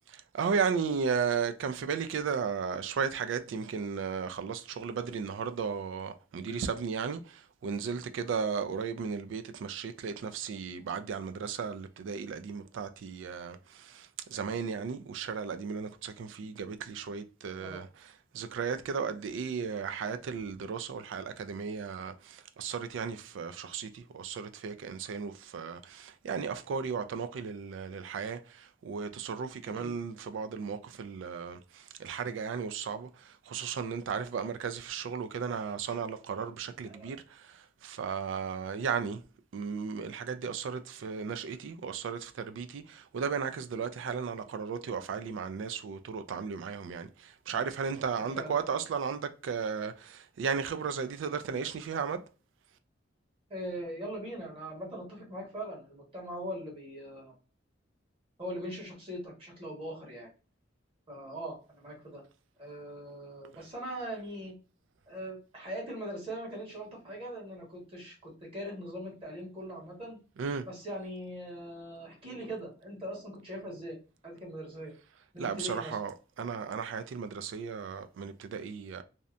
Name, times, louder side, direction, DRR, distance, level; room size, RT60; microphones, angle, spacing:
voice 1, 0.1-39.2 39.5-52.2 70.4-70.6 75.4-79.0, right 6 dB, 75° right, 0.3 m, -35 dB
voice 2, 53.5-57.3 58.4-60.3 61.1-62.2 62.6-64.5 65.1-70.2 70.7-74.0 74.2-74.9 75.3-76.0, equal, 30° right, 1.3 m, -41 dB
2.7 x 2.1 x 2.4 m
head